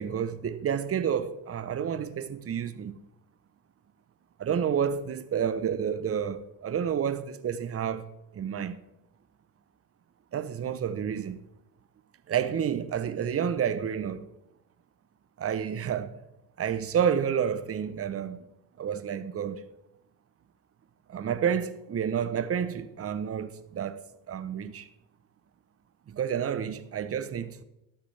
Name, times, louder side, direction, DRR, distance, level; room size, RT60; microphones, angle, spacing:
voice 1, 0.0-3.0 4.4-8.0 8.3-8.8 10.3-11.4 12.3-14.3 15.4-16.2 16.6-18.5 18.8-19.6 21.1-24.9 26.1-27.6, right 8 dB, 30° right, 0.7 m, -30 dB
12.0 x 8.2 x 3.3 m
supercardioid pair, 80°, 45 cm